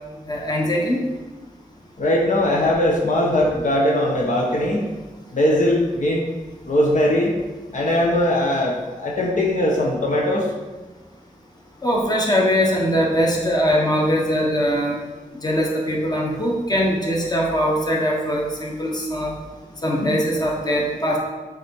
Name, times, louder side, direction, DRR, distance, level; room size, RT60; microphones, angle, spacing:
voice 1, 0.3-1.0 11.8-15.0 15.4-19.3 19.8-21.2, equal, 30° left, -2 dB, 1.4 m, -21 dB
voice 2, 2.0-4.9 5.3-6.2 6.7-7.3 7.7-10.5, left 1 dB, 65° left, -2 dB, 1.1 m, -20 dB
7.6 x 4.0 x 4.6 m, 1.2 s
wide cardioid pair, 95°, 14 cm